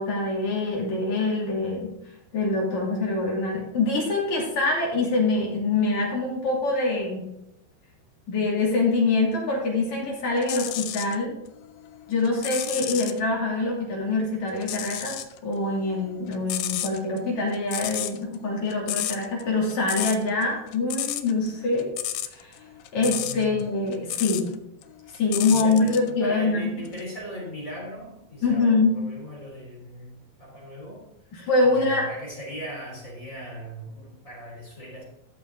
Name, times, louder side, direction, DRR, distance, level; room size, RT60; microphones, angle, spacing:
voice 1, 0.0-1.9 2.3-7.2 8.3-11.3 12.1-21.9 22.3-22.6 22.9-24.5 25.1-26.7 28.4-29.0 31.3-32.0, left 3 dB, 45° left, -2 dB, 3.7 m, -24 dB
sound 1, 10.4-11.2 11.6-13.2 14.6-15.4 15.6-24.6 24.8-26.1 26.9-27.0, left 13 dB, 85° left, 2.0 m, -32 dB
voice 2, 23.0-23.6 25.5-31.1 31.6-35.0, equal, 20° left, -3 dB, 3.2 m, -39 dB
14.0 x 6.7 x 3.8 m, 0.85 s
omnidirectional pair, 4.9 m